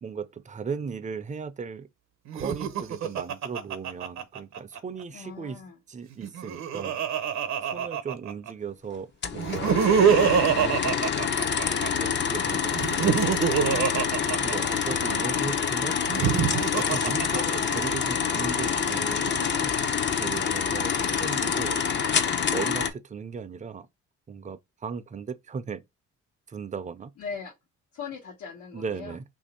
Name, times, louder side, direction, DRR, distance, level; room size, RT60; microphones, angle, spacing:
voice 1, 0.0-1.9 2.3-5.6 5.9-7.0 7.6-11.3 11.9-13.8 14.4-16.0 16.8-21.8 22.5-23.9 24.3-25.8 26.5-27.1 28.7-29.2, right 5 dB, 25° right, 0.5 m, -37 dB
Laughter, 2.3-4.8 6.1-8.5 9.4-11.9 12.7-15.2 16.0-17.9, right 7 dB, 65° right, 0.7 m, -25 dB
voice 2, 5.1-5.8 27.2-27.5 27.9-29.2, left 6 dB, 85° left, 1.2 m, -39 dB
sound 1, 9.2-22.9, left 7 dB, 40° left, 0.6 m, -27 dB
3.0 x 2.6 x 4.1 m
cardioid pair, 90°, 30 cm